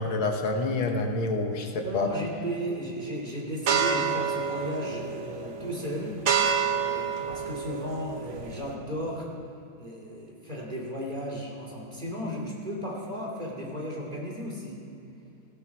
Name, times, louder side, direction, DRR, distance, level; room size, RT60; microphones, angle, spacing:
voice 1, 0.0-2.1, left 2 dB, 75° left, 4 dB, 2.1 m, -27 dB
voice 2, 1.8-6.2 6.7-9.3 9.8-14.8, equal, 20° right, -2 dB, 2.9 m, -35 dB
sound 1, 3.7-8.7, right 6 dB, 85° right, 2.2 m, -29 dB
17.0 x 17.0 x 4.8 m, 2.8 s
omnidirectional pair, 2.3 m